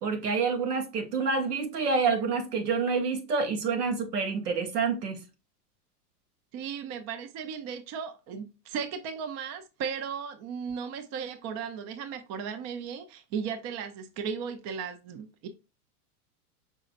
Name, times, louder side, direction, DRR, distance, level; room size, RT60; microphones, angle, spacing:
voice 1, 0.0-5.2, right 5 dB, 80° right, 1.2 m, -28 dB
voice 2, 6.5-15.5, right 7 dB, 35° right, 0.7 m, -36 dB
5.3 x 3.8 x 2.5 m
hypercardioid pair, 100°, 46 cm